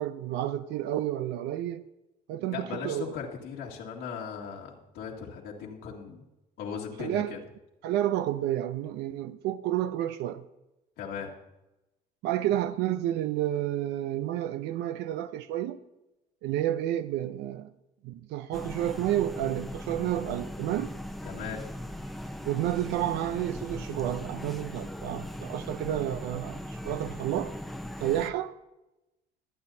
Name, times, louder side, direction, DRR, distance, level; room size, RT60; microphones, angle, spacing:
voice 1, 0.0-1.8 2.3-3.1 7.0-7.4 7.8-10.4 12.2-15.8 16.4-17.7 18.0-20.9 22.5-27.5 28.0-28.6, right 12 dB, 90° right, 0.6 m, -30 dB
voice 2, 2.5-6.2 6.6-7.4 11.0-11.3 21.2-21.7, left 6 dB, 85° left, 2.1 m, -38 dB
sound 1, 18.5-28.3, equal, ahead, 0.7 m, -39 dB
23.0 x 9.0 x 2.8 m
cardioid pair, 110°, 17 cm